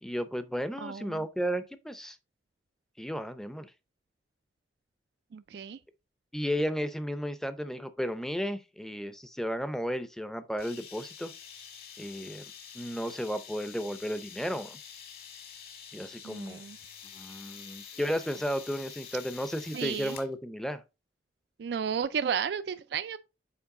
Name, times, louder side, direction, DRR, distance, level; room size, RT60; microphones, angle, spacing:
voice 1, 0.0-2.2 3.0-3.7 6.3-11.3 12.0-14.8 15.9-16.6 17.1-20.8, equal, 5° left, 0.6 m, -34 dB
voice 2, 0.8-1.2 5.3-5.8 16.2-16.8 19.7-20.2 21.6-23.2, right 7 dB, 65° right, 0.3 m, -33 dB
sound 1, 10.6-20.3, left 7 dB, 55° left, 1.8 m, -47 dB
7.2 x 4.5 x 3.7 m
head